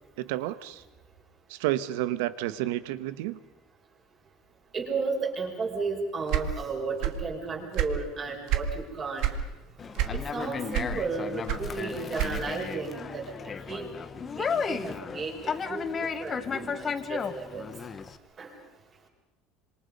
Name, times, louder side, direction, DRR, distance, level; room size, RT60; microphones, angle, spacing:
voice 1, 0.2-0.8 1.5-3.4, right 15 dB, 90° right, 14 dB, 1.3 m, -30 dB
voice 2, 4.7-9.3 10.1-13.2 13.7-13.9 14.1-15.9 16.2-17.7 18.4-18.5, right 4 dB, 25° right, 1 dB, 5.4 m, -33 dB
sound 1, 6.3-7.3 7.6-8.7 9.2-9.5 9.9-10.4 10.7-12.6, right 12 dB, 55° right, 2.2 m, -28 dB
Conversation, 9.8-18.2, left 6 dB, 20° left, 1.2 m, -34 dB
27.0 x 27.0 x 5.4 m, 0.96 s
cardioid pair, 165°, 0 cm